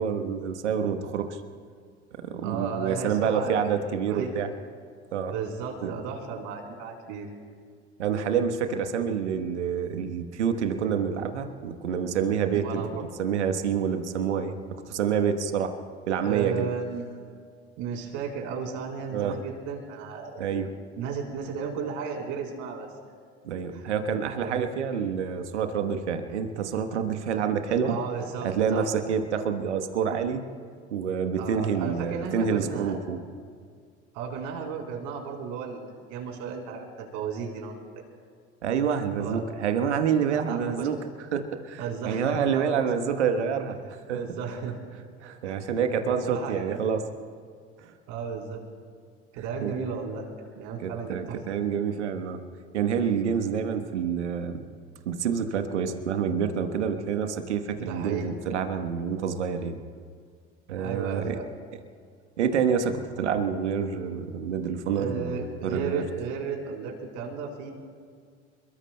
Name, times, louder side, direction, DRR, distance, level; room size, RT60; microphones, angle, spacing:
voice 1, 0.0-1.4 2.1-4.5 5.1-5.3 5.8-5.9 8.0-12.8 13.2-14.6 14.9-15.7 16.1-16.7 19.1-19.4 20.4-20.7 23.4-28.0 28.4-30.4 30.9-33.2 38.6-41.0 41.3-43.8 44.1-44.2 45.2-47.0 47.8-47.9 49.6-49.7 50.8-52.4 52.7-54.6 55.1-59.8 60.7-61.4 62.4-66.0, right 7 dB, 80° right, 7 dB, 1.2 m, -27 dB
voice 2, 2.4-3.8 4.1-4.3 5.3-7.3 12.5-13.0 16.2-17.1 17.8-20.6 21.0-22.9 23.7-23.9 24.4-24.7 27.9-28.9 31.4-33.0 34.1-35.8 36.1-37.8 39.2-39.5 40.3-40.9 41.8-42.9 43.8-44.7 45.4-45.7 46.1-46.8 48.1-48.6 49.3-50.3 50.6-51.6 57.8-58.3 60.8-61.5 65.0-67.7, right 6 dB, 60° right, 1 dB, 3.9 m, -34 dB
28.0 x 22.0 x 2.2 m, 2.1 s
figure-of-eight pair, 65°, 34 cm